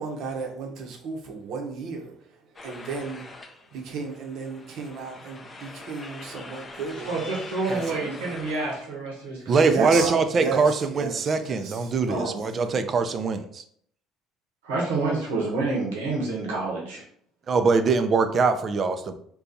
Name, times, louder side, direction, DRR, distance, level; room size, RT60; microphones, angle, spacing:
voice 1, 0.0-2.1 2.6-3.3 3.7-7.2 7.7-8.3 9.6-12.4, right 5 dB, 65° right, 2 dB, 0.8 m, -34 dB
sound 1, 2.6-8.8, left 3 dB, 30° left, 0.5 m, -43 dB
voice 2, 7.1-10.1 12.1-12.4 14.6-17.0, right 3 dB, 90° right, -3 dB, 0.9 m, -28 dB
voice 3, 9.5-13.6 17.5-19.1, right 4 dB, 45° right, 9 dB, 0.4 m, -23 dB
2.7 x 2.3 x 3.8 m, 0.63 s
hypercardioid pair, 70°, 0 cm